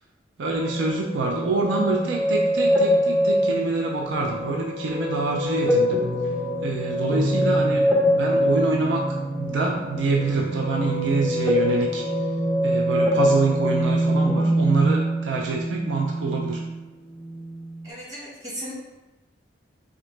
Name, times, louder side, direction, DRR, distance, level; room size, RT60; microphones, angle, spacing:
voice 1, 0.4-6.0 6.6-9.0 9.4-12.1 12.6-16.6, right 3 dB, 70° right, 0 dB, 0.4 m, -26 dB
sound 1, 0.5-16.8 17.2-17.9, equal, ahead, 0.4 m, -24 dB
voice 2, 17.8-18.7, equal, 20° right, -8 dB, 1.3 m, -36 dB
3.8 x 2.1 x 3.2 m, 1.1 s
head